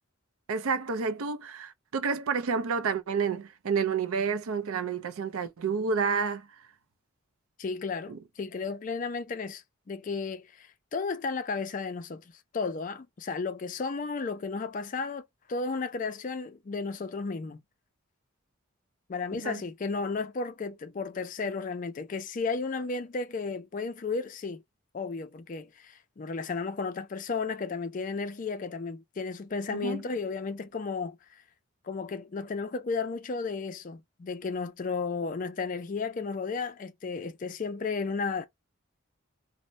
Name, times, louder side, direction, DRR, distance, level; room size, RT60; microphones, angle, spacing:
voice 1, 0.5-6.5 8.1-8.2 19.3-19.6 29.7-30.0, right 5 dB, 85° right, 0.5 m, -30 dB
voice 2, 7.6-12.2 12.5-17.6 19.1-24.6 24.9-31.2 31.8-38.4, left 4 dB, 40° left, 0.4 m, -33 dB
2.6 x 2.1 x 3.0 m
head